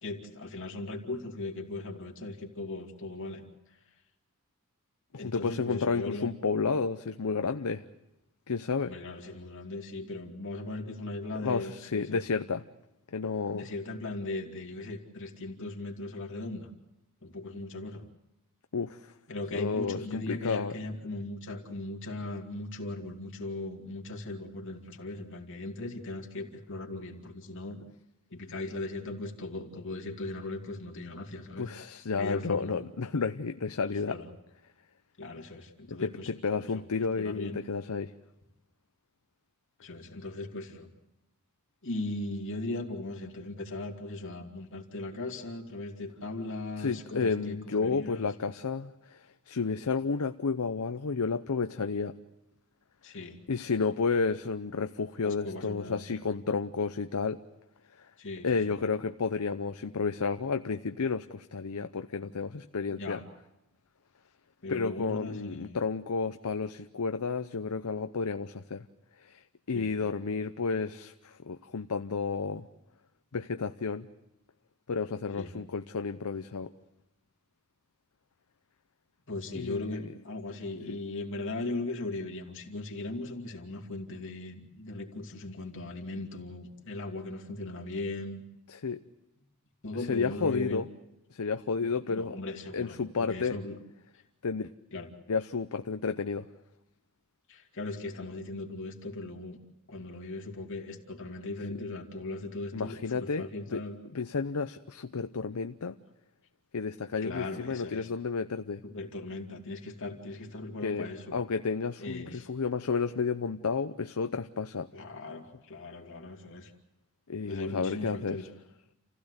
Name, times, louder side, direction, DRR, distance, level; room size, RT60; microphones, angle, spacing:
voice 1, 0.0-3.4 3.7-3.8 5.2-6.3 8.9-12.2 13.5-16.7 17.2-18.0 19.3-27.8 28.3-31.7 32.2-32.8 34.0-34.3 35.2-36.3 36.6-37.6 39.8-40.9 41.8-48.2 53.0-53.4 55.2-56.2 58.2-58.8 62.9-63.2 64.6-65.8 69.7-69.9 75.3-75.5 79.3-88.4 89.8-90.8 91.8-93.8 94.1-94.2 94.9-95.1 97.5-99.6 99.9-104.0 107.2-108.1 108.8-111.4 112.0-112.5 114.9-116.7 117.5-118.5, left 2 dB, 60° left, 3 dB, 2.6 m, -38 dB
voice 2, 5.1-7.8 8.5-8.9 11.4-12.6 13.1-13.7 18.7-19.1 19.5-20.7 31.6-34.2 35.9-38.1 46.8-49.2 49.5-52.1 53.5-57.4 58.0-58.1 58.4-63.2 64.7-68.9 69.2-69.4 69.7-72.7 73.3-74.1 74.9-76.7 79.5-80.1 80.9-81.0 88.7-89.0 90.1-90.9 91.3-92.4 92.7-93.6 94.4-94.7 95.3-96.5 102.7-103.5 103.7-103.8 104.1-106.0 106.7-108.8 110.8-111.1 111.3-114.9 117.3-118.4, left 4 dB, 90° left, 8 dB, 0.7 m, -31 dB
28.5 x 16.0 x 8.0 m, 0.93 s
head